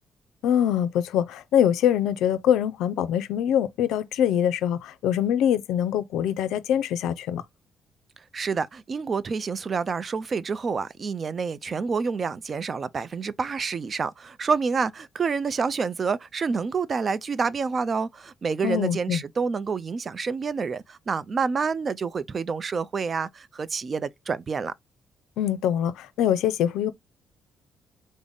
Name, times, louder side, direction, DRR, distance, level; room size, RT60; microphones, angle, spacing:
voice 1, 0.4-7.4 18.6-19.2 25.4-26.9, left 10 dB, 85° left, 0.4 m, -24 dB
voice 2, 8.3-24.7, right 5 dB, 40° right, 0.4 m, -28 dB
3.4 x 2.0 x 3.8 m
cardioid pair, 90°, 0 cm